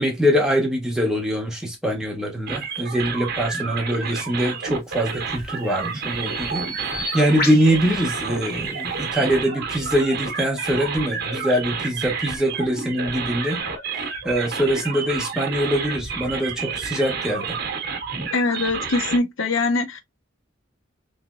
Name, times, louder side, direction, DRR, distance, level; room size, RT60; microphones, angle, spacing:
voice 1, 0.0-6.6 7.1-13.6 14.2-17.5, equal, 5° right, 1.2 m, -23 dB
sound 1, 2.5-19.2, right 5 dB, 55° right, 1.0 m, -30 dB
Bird vocalization bird call bird song, 4.9-9.1, left 1 dB, 50° left, 1.4 m, -35 dB
voice 2, 18.3-20.0, left 3 dB, 70° left, 0.6 m, -22 dB
3.4 x 3.2 x 2.4 m
head